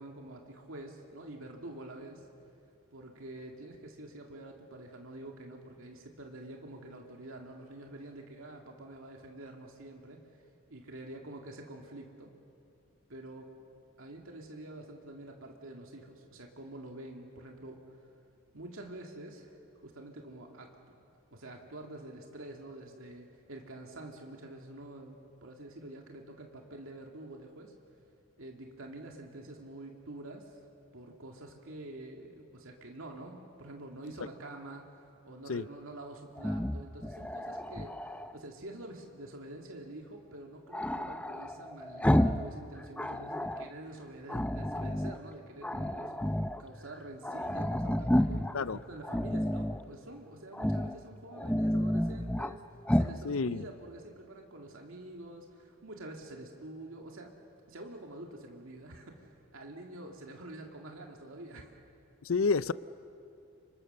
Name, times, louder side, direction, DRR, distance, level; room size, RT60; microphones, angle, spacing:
voice 1, 0.0-2.3 2.9-10.2 10.7-12.3 13.1-13.5 14.0-17.8 18.5-20.7 21.3-27.7 28.4-30.6 30.9-46.3 46.6-52.6 52.9-57.3 57.7-61.7, right 1 dB, 85° right, 1 dB, 2.3 m, -47 dB
Growling, 36.4-38.4 40.7-42.5 42.8-43.7 44.3-45.2 45.6-46.6 46.9-47.0 47.2-48.6 49.0-49.8 50.5-51.0 51.3-52.5 52.9-53.2, equal, 5° left, 0.6 m, -31 dB
voice 2, 53.2-53.6 62.2-62.7, left 4 dB, 85° left, 16 dB, 0.6 m, -29 dB
29.5 x 26.0 x 6.7 m, 2.7 s
head